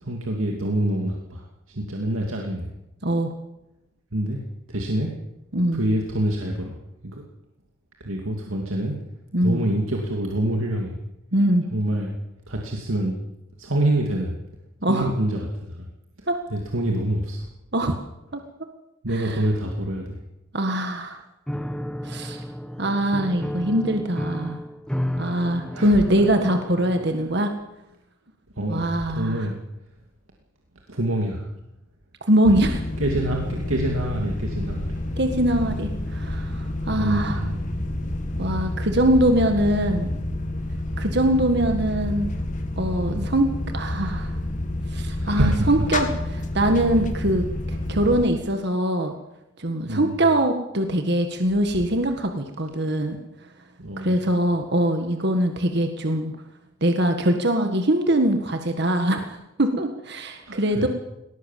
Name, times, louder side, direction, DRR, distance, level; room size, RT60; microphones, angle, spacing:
voice 1, 0.0-2.7 4.1-5.1 5.7-6.8 7.0-7.2 8.0-9.0 9.4-11.0 11.7-12.2 12.5-13.2 13.6-14.4 14.9-15.9 16.2-17.5 19.0-20.2 25.7-26.3 28.5-29.6 30.9-31.5 33.0-35.2 36.9-37.7 43.1-43.3 45.1-45.7 49.8-50.2 53.8-54.1 60.4-60.9, right 1 dB, 85° right, 0 dB, 2.7 m, -26 dB
voice 2, 3.0-3.3 5.5-5.8 9.3-9.6 11.3-11.6 14.8-15.1 16.3-16.4 17.7-18.0 18.3-18.4 19.1-19.4 20.5-21.2 22.0-22.4 22.8-24.6 25.2-27.5 28.7-29.5 32.3-32.8 35.2-37.4 38.4-40.1 41.0-42.3 42.8-43.5 43.7-44.4 44.9-46.1 46.3-49.1 49.6-53.2 54.0-56.3 56.8-60.9, right 1 dB, 55° right, 5 dB, 1.8 m, -22 dB
Piano, 21.5-27.4, equal, 5° left, 1.1 m, -32 dB
sound 1, 32.4-48.3, left 1 dB, 40° left, 2.2 m, -29 dB
19.5 x 19.0 x 7.6 m, 0.92 s
head